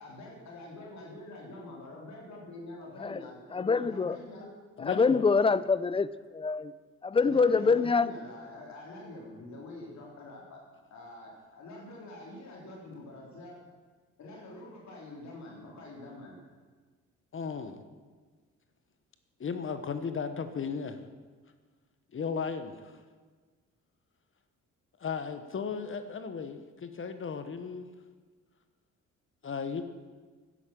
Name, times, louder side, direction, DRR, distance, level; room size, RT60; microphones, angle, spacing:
voice 1, 0.0-4.5 7.2-10.6 10.9-13.6 14.2-16.4, left 2 dB, 65° left, -2 dB, 3.6 m, -46 dB
voice 2, 3.0-4.2 4.8-6.7 7.0-8.1, left 4 dB, 20° left, 16 dB, 0.5 m, -26 dB
voice 3, 4.8-5.2 17.3-17.8 19.4-21.0 22.1-23.0 25.0-27.8 29.4-29.8, left 5 dB, 45° left, 9 dB, 1.1 m, -35 dB
10.5 x 10.0 x 7.6 m, 1.4 s
cardioid pair, 90°, 30 cm